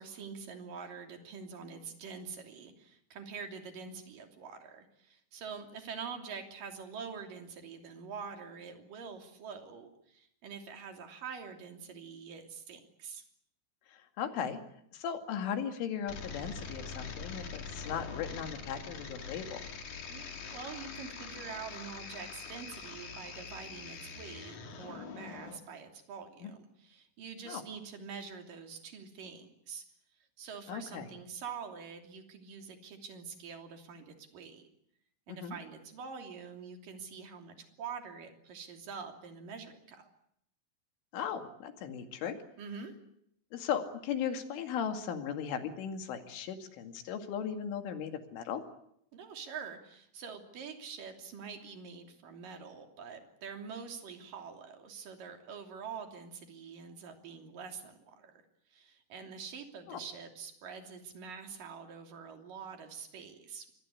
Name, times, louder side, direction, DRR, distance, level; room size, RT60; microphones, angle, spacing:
voice 1, 0.0-13.2 20.1-20.2 20.5-29.8 30.4-34.7 35.3-40.1 42.6-43.0 49.1-58.4 58.7-63.7, right 6 dB, 50° right, 5 dB, 4.3 m, -45 dB
voice 2, 13.9-14.6 14.9-19.6 26.4-26.5 27.5-27.6 30.7-31.1 35.3-35.5 41.1-42.4 43.5-48.6 59.9-60.0, left 8 dB, 80° left, 6 dB, 4.8 m, -37 dB
sound 1, 16.1-25.6, left 5 dB, 45° left, 3.5 m, -44 dB
26.0 x 22.0 x 8.5 m, 0.72 s
omnidirectional pair, 5.6 m